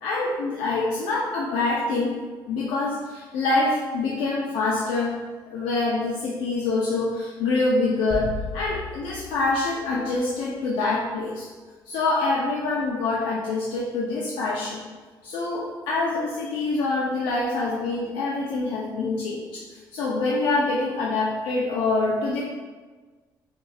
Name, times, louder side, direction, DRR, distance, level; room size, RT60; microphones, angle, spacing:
voice 1, 0.0-2.1 2.5-5.1 5.5-11.5 11.9-14.8 15.2-22.4, left 3 dB, 85° left, -4 dB, 0.6 m, -25 dB
sound 1, 8.1-10.6, left 2 dB, 30° left, 1.1 m, -36 dB
6.6 x 2.7 x 2.3 m, 1.4 s
cardioid pair, 100°, 8 cm